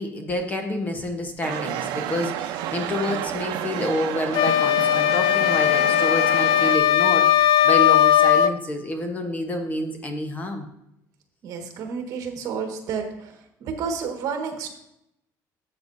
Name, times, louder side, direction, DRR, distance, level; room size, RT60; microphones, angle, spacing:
voice 1, 0.0-10.7, left 1 dB, 20° left, 5 dB, 1.0 m, -28 dB
sound 1, 1.4-6.8, right 11 dB, 75° right, 0.7 m, -30 dB
sound 2, 4.3-8.6, left 11 dB, 70° left, 0.5 m, -18 dB
voice 2, 11.4-13.3 13.6-14.7, right 6 dB, 55° right, 4 dB, 1.5 m, -30 dB
12.5 x 7.9 x 2.6 m, 0.80 s
cardioid pair, 165°, 7 cm